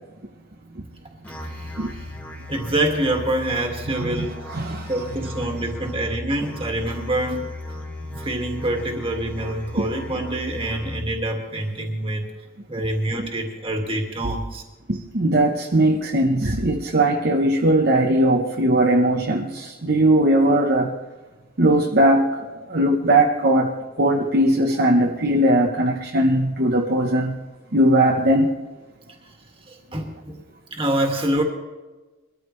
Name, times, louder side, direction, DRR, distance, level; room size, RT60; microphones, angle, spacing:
Musical instrument, 1.2-11.2, left 1 dB, 10° left, 1.6 m, -36 dB
voice 1, 1.3-2.0 2.5-4.3 4.9-7.4 8.2-12.3 12.7-14.6 29.7-30.4 30.7-31.4, right 1 dB, 25° right, 2 dB, 2.0 m, -26 dB
voice 2, 4.0-4.9 9.8-9.9 14.2-14.3 14.9-21.0 21.6-22.4 22.7-27.4 27.7-28.5, right 1 dB, 50° right, 0 dB, 0.9 m, -19 dB
23.0 x 13.5 x 3.2 m, 1.2 s
head